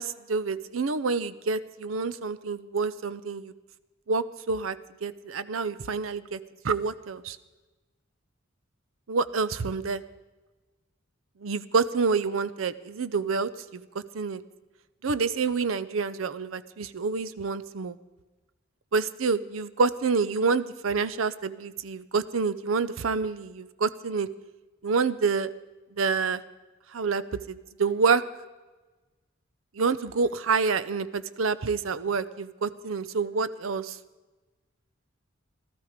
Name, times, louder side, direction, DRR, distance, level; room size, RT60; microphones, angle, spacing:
voice 1, 0.0-3.5 4.1-4.8 5.0-6.4 6.6-7.4 9.1-10.0 11.4-13.8 14.1-14.4 15.0-18.0 18.9-24.3 24.8-25.5 26.0-26.4 26.9-28.2 29.8-34.0, right 4 dB, 85° right, 15 dB, 0.6 m, -27 dB
16.0 x 13.0 x 5.1 m, 1.2 s
head